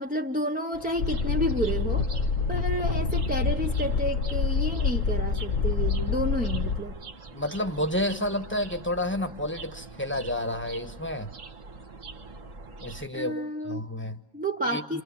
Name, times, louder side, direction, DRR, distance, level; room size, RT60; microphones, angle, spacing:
voice 1, 0.0-2.1 2.5-7.0 13.1-13.9 14.3-15.0, right 1 dB, 10° right, 2 dB, 0.8 m, -30 dB
sound 1, 0.7-13.1, right 3 dB, 65° right, 2.0 m, -44 dB
sound 2, 1.0-6.8, left 5 dB, 65° left, 1.8 m, -27 dB
voice 2, 7.3-11.3 12.8-14.2 14.6-15.0, left 1 dB, 10° left, 8 dB, 1.3 m, -30 dB
29.0 x 27.5 x 7.1 m, 0.89 s
omnidirectional pair, 1.4 m